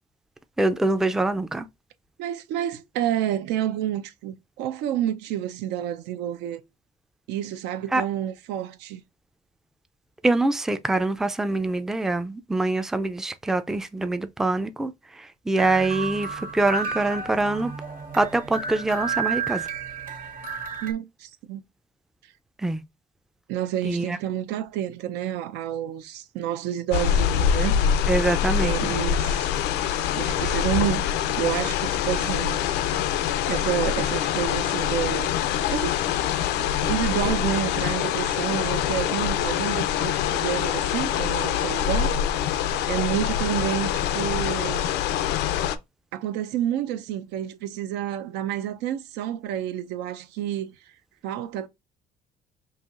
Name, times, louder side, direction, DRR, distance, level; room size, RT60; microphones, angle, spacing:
voice 1, 0.6-1.7 7.9-8.0 10.2-14.9 15.5-17.7 18.1-19.6 22.6-22.8 23.8-24.2 28.1-28.9, right 2 dB, 5° right, 0.3 m, -24 dB
voice 2, 2.2-6.6 7.3-9.0 20.8-21.6 23.5-27.8 28.6-29.5 30.1-31.0 31.4-32.6 33.5-35.3 35.7-42.1 42.9-44.9 46.1-50.7 51.2-51.7, right 11 dB, 90° right, 0.5 m, -29 dB
sound 1, 15.6-20.9, right 5 dB, 55° right, 1.2 m, -32 dB
sound 2, 26.9-45.8, left 9 dB, 85° left, 0.4 m, -25 dB
5.5 x 2.8 x 2.4 m
cardioid pair, 110°, 17 cm